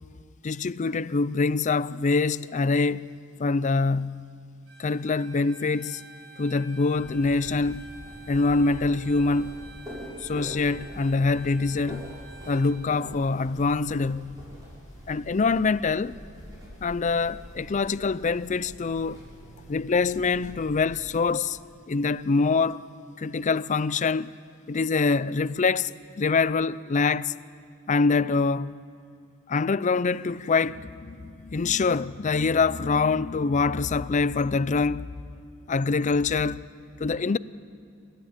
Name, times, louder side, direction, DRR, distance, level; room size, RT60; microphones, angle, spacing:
voice 1, 0.4-3.1 3.4-4.3 4.8-6.0 6.4-7.8 8.3-9.5 10.2-12.1 12.5-14.4 15.1-16.2 16.8-19.2 19.7-21.6 21.9-22.8 23.2-24.3 24.7-25.9 26.2-27.3 27.9-28.7 29.5-35.1 35.7-36.6 37.0-37.4, left 4 dB, 35° left, 0.4 m, -24 dB
Bowed string instrument, 4.7-12.8, right 1 dB, 70° right, 3.7 m, -49 dB
sound 1, 7.0-21.0, equal, 15° right, 7.2 m, -44 dB
29.0 x 13.5 x 8.9 m
head